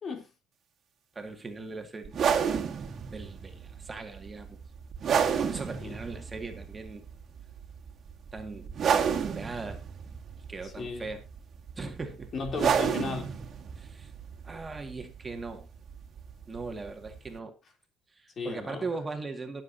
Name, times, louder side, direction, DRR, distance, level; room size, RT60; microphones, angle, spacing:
voice 1, 1.2-2.5 3.1-4.6 5.4-7.0 8.3-9.8 10.5-11.2 11.8-12.3 13.8-14.1 14.4-15.7 16.5-17.6 18.1-19.6, right 3 dB, 25° right, 2.1 m, -39 dB
sound 1, 2.1-17.4, right 7 dB, 50° right, 2.1 m, -32 dB
voice 2, 10.8-11.1 12.3-13.3 18.4-18.8, left 4 dB, 45° left, 3.4 m, -35 dB
20.0 x 7.5 x 2.8 m
supercardioid pair, 90°, 0 cm